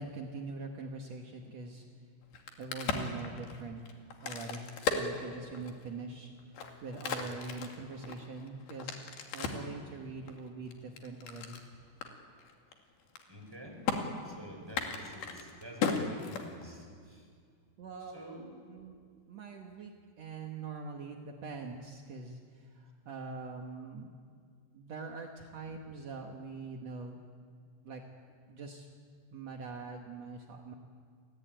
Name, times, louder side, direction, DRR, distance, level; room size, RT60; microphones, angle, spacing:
voice 1, 0.0-1.8 2.6-11.6 17.8-18.2 18.7-19.0 19.3-24.2 24.7-27.2 27.8-28.0 28.5-28.9 29.3-30.7, right 3 dB, 65° right, 2 dB, 1.7 m, -43 dB
Crack, 2.2-5.9 6.4-9.7 10.3-11.6 12.0-12.1 12.4-12.7 13.0-13.5 13.9-14.0 14.6-16.9, left 6 dB, 60° left, 3.8 m, -36 dB
voice 2, 13.3-13.9 14.2-17.3 18.1-18.5, right 1 dB, 5° right, 2 dB, 4.7 m, -48 dB
29.0 x 19.0 x 9.1 m, 2.1 s
omnidirectional pair, 5.4 m